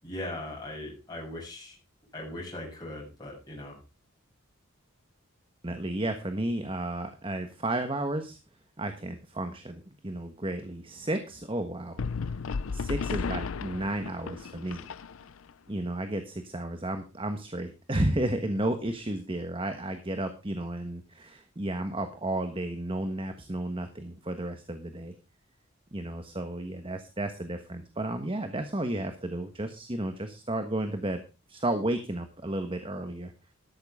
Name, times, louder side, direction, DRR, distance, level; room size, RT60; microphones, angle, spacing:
voice 1, 0.0-1.8 2.1-3.8, left 1 dB, 20° left, -3 dB, 7.2 m, -39 dB
voice 2, 5.6-8.4 8.8-12.0 12.7-14.9 15.7-25.2 25.9-31.2 31.5-33.3, right 1 dB, 25° right, 8 dB, 1.3 m, -32 dB
sound 1, 12.0-15.5, left 5 dB, 75° left, 0.5 m, -34 dB
13.5 x 11.5 x 3.6 m, 0.31 s
head